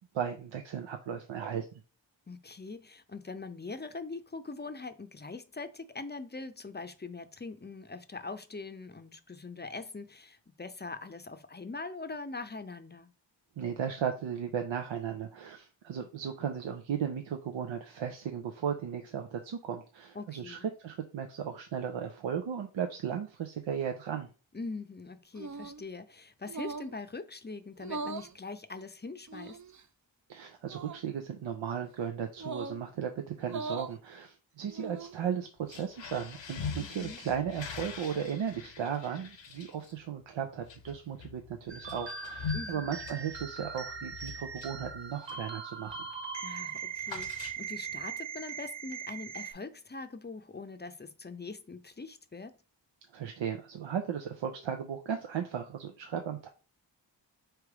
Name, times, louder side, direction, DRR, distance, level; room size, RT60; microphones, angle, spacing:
voice 1, 0.1-1.8 13.6-24.3 30.3-46.1 53.1-56.5, right 8 dB, 90° right, 0.6 m, -36 dB
voice 2, 2.3-13.1 20.1-20.6 24.5-29.6 36.8-37.2 42.5-42.9 46.4-52.6, left 3 dB, 25° left, 0.5 m, -42 dB
sound 1, 25.4-25.8 26.5-27.0 27.8-28.3 29.3-29.8 30.6-31.0 32.4-32.8 33.4-34.0 34.6-35.2, right 4 dB, 40° right, 0.5 m, -40 dB
sound 2, 35.6-45.5 45.9-46.2 46.4-48.0, left 6 dB, 70° left, 0.8 m, -43 dB
sound 3, 41.7-49.5, right 6 dB, 70° right, 1.4 m, -40 dB
3.4 x 3.0 x 4.7 m
cardioid pair, 40°, 45 cm